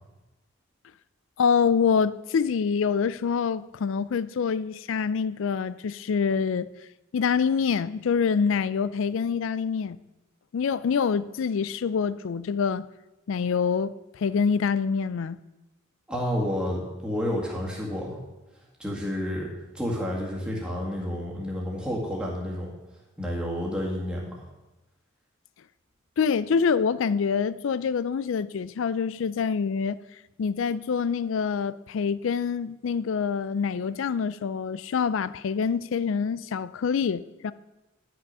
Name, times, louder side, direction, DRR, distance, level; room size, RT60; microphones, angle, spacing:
voice 1, 1.4-6.7 7.1-10.0 10.5-12.9 13.3-15.4 26.2-30.0 30.4-37.5, left 6 dB, 65° left, 0.3 m, -26 dB
voice 2, 16.1-18.2 18.8-19.5 19.7-22.7 23.2-24.4, equal, 5° right, 1.8 m, -30 dB
10.5 x 6.4 x 5.5 m
head